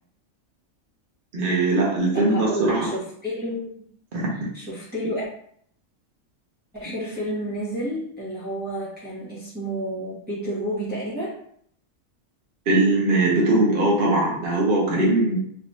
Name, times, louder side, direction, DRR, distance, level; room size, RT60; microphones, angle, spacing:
voice 1, 1.3-2.9 4.1-4.3 12.7-15.4, right 2 dB, 45° right, -3 dB, 0.9 m, -20 dB
voice 2, 2.1-3.7 4.3-5.3 6.7-11.4, right 1 dB, 5° right, -9 dB, 1.2 m, -30 dB
3.3 x 3.0 x 2.6 m, 0.64 s
omnidirectional pair, 1.4 m